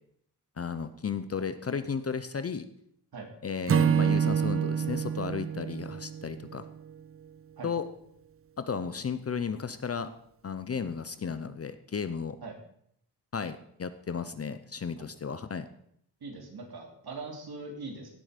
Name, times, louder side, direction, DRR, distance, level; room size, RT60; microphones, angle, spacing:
voice 1, 0.6-2.7 3.4-6.6 7.6-7.9 8.6-10.1 10.4-12.4 13.3-15.7, left 6 dB, 35° left, 12 dB, 0.6 m, -34 dB
Acoustic guitar / Strum, 3.7-7.0, right 7 dB, 35° right, 0.4 m, -27 dB
voice 2, 16.2-18.1, right 3 dB, 70° right, 1 dB, 3.0 m, -41 dB
16.5 x 7.7 x 5.1 m, 0.69 s
wide cardioid pair, 155°, 40 cm